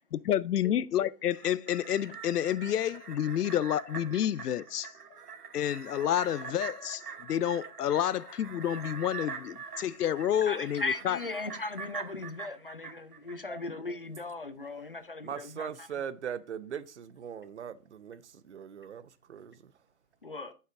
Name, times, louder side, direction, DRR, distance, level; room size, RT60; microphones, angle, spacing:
voice 1, 0.3-4.9 5.5-11.2, left 10 dB, 85° left, 0.6 m, -29 dB
sound 1, 1.2-13.8 14.2-14.3, right 6 dB, 80° right, 1.5 m, -44 dB
voice 2, 10.4-15.9 20.2-20.5, left 3 dB, 40° left, 0.4 m, -37 dB
voice 3, 15.2-18.2 18.5-19.6, right 8 dB, 50° right, 0.6 m, -40 dB
7.7 x 5.7 x 3.7 m
hypercardioid pair, 165°, 46 cm